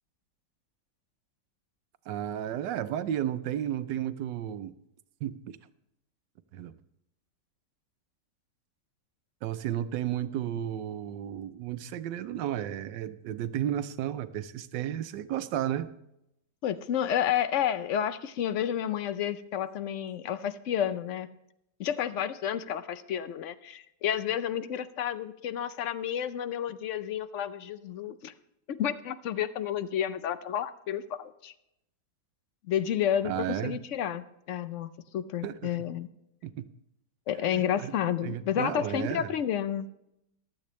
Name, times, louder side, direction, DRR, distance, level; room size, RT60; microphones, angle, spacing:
voice 1, 2.1-4.7 5.2-5.6 6.5-6.7 9.4-15.9 33.2-33.8 35.4-35.7 36.4-36.7 37.5-37.9 38.2-39.3, right 11 dB, 90° right, 12 dB, 1.3 m, -33 dB
voice 2, 16.6-21.3 21.8-28.3 28.7-31.5 32.7-36.1 37.3-39.9, left 9 dB, 60° left, 13 dB, 0.8 m, -31 dB
15.0 x 12.0 x 3.1 m, 0.82 s
omnidirectional pair, 1.8 m